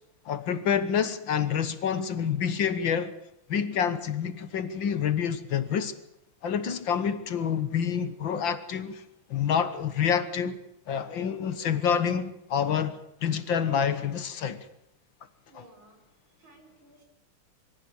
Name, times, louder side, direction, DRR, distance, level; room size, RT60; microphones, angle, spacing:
voice 1, 0.3-3.1 3.5-5.9 6.4-9.0 9.3-10.6 10.9-14.6 15.5-15.6, left 7 dB, 65° left, 1.9 m, -27 dB
voice 2, 15.5-16.0 16.4-17.0, right 1 dB, 65° right, 6.1 m, -55 dB
23.5 x 15.0 x 8.6 m
omnidirectional pair, 2.3 m